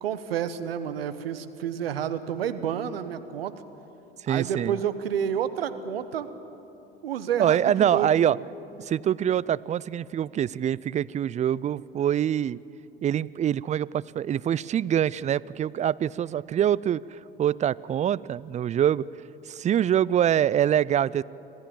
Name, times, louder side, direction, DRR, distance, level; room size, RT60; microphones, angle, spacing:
voice 1, 0.0-3.5 4.3-6.3 7.0-8.3, right 9 dB, 85° right, 12 dB, 1.0 m, -30 dB
voice 2, 4.3-4.8 7.4-8.4 8.8-12.6 13.0-19.0 19.5-21.2, right 10 dB, 25° right, 22 dB, 0.4 m, -25 dB
25.5 x 16.5 x 7.5 m, 3.0 s
hypercardioid pair, 70°, 29 cm